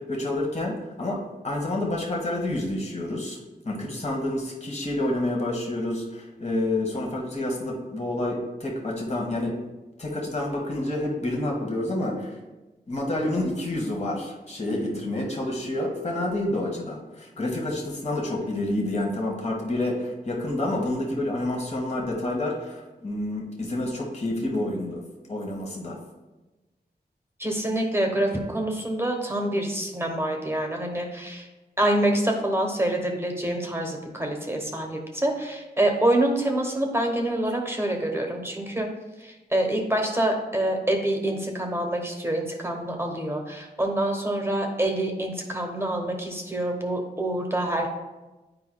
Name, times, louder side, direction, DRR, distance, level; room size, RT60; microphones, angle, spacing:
voice 1, 0.0-3.4 3.6-9.6 10.0-12.4 12.9-25.0 25.3-26.0, left 1 dB, 40° left, -1 dB, 1.3 m, -28 dB
voice 2, 27.4-31.5 31.8-38.9 39.2-47.9, right 1 dB, 15° right, 1 dB, 1.1 m, -26 dB
9.4 x 4.7 x 2.2 m, 1.1 s
cardioid pair, 55°, 17 cm